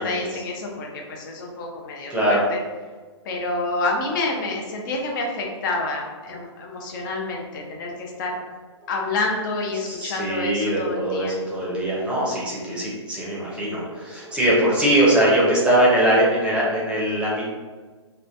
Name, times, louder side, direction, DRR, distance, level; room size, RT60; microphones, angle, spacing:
voice 1, 0.0-2.6 3.2-8.4 8.9-11.3, left 2 dB, 40° left, 0 dB, 0.6 m, -28 dB
voice 2, 2.1-2.4 9.9-17.5, right 1 dB, 5° right, -6 dB, 0.7 m, -21 dB
3.0 x 2.2 x 2.5 m, 1.4 s
hypercardioid pair, 135°, 15 cm